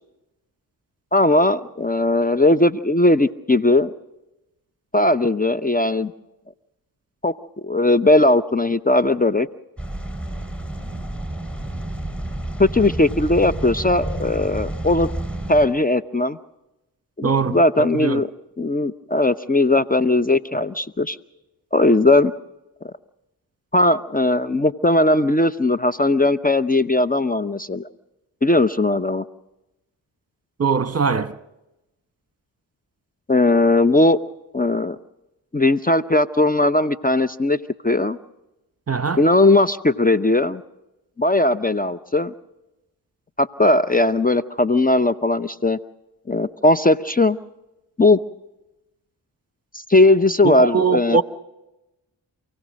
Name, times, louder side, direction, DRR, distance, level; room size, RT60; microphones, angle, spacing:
voice 1, 1.1-3.9 4.9-6.1 7.2-7.3 7.6-9.5 12.6-15.1 15.5-16.4 17.2-18.3 18.6-21.2 21.7-22.3 22.8-22.9 23.7-27.9 28.4-29.2 33.3-34.2 34.5-35.0 35.5-38.2 39.2-40.6 41.2-42.3 43.4-45.8 46.3-47.4 48.0-48.2 49.7-51.2, left 2 dB, 20° left, 0.8 m, -18 dB
sound 1, 9.8-15.7, right 1 dB, 5° left, 5.4 m, -30 dB
voice 2, 17.2-18.2 30.6-31.4 38.9-39.2 50.4-51.2, right 5 dB, 35° right, 1.1 m, -21 dB
28.0 x 16.5 x 6.4 m
supercardioid pair, 40°, 45 cm